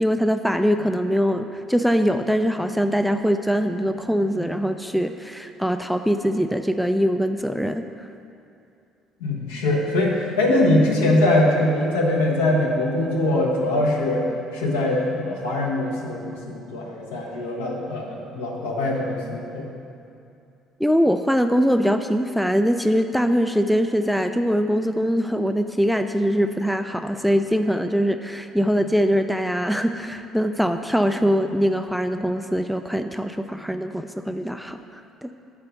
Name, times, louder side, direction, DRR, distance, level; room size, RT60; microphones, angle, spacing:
voice 1, 0.0-8.1 20.8-35.3, equal, ahead, 7 dB, 0.3 m, -22 dB
voice 2, 9.2-14.3 14.5-19.7, left 1 dB, 75° left, -3 dB, 1.1 m, -22 dB
6.1 x 4.7 x 6.6 m, 2.6 s
figure-of-eight pair, 50°, 0 cm